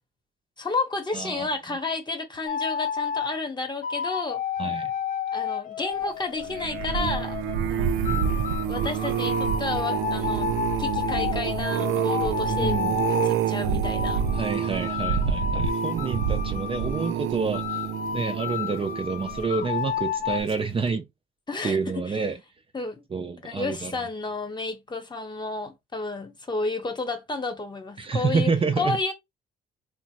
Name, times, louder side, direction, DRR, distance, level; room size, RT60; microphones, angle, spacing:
voice 1, 0.6-4.4 5.3-7.4 7.7-8.0 8.7-12.8 13.1-14.2 21.5-22.2 22.7-23.0 23.4-28.5 28.8-29.1, left 3 dB, 20° left, 0.8 m, -31 dB
voice 2, 1.1-1.5 4.6-4.9 12.5-13.0 14.4-17.8 18.1-21.1 21.6-22.4 23.1-24.0 28.0-29.0, right 5 dB, 25° right, 0.4 m, -28 dB
sound 1, 2.5-3.3 3.8-7.6 8.1-13.4 13.8-17.2 17.5-20.4, left 7 dB, 45° left, 0.4 m, -31 dB
sound 2, 6.4-19.8 20.3-20.6 20.9-21.0, right 8 dB, 90° right, 0.4 m, -28 dB
3.1 x 2.0 x 2.9 m
cardioid pair, 90°, 20 cm